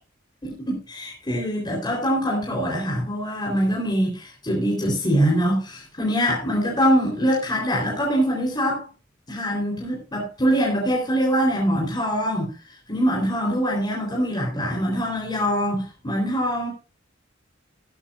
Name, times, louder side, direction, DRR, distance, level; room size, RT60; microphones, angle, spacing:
voice 1, 0.4-8.9 9.3-12.5 12.9-16.7, equal, 20° left, -2 dB, 3.8 m, -23 dB
15.0 x 13.0 x 2.5 m, 0.32 s
head